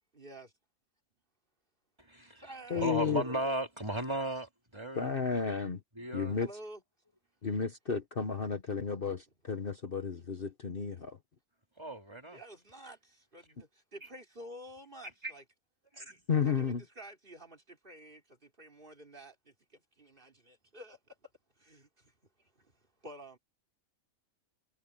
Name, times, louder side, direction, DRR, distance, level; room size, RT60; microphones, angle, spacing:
voice 1, 0.1-0.5 2.4-3.0 6.4-6.8 12.3-13.0 13.3-15.4 16.0-16.2 16.4-19.3 20.0-21.0 21.6-21.9 23.0-23.4, right 1 dB, 35° right, 3.3 m, -50 dB
voice 2, 2.0-5.1 6.0-6.4 11.8-12.4 15.2-15.3 15.9-16.2, right 1 dB, 20° right, 3.7 m, -36 dB
voice 3, 2.7-3.2 4.9-5.8 6.1-6.5 7.4-11.2 16.3-16.8, left 6 dB, 40° left, 1.3 m, -32 dB
omnidirectional pair, 1.5 m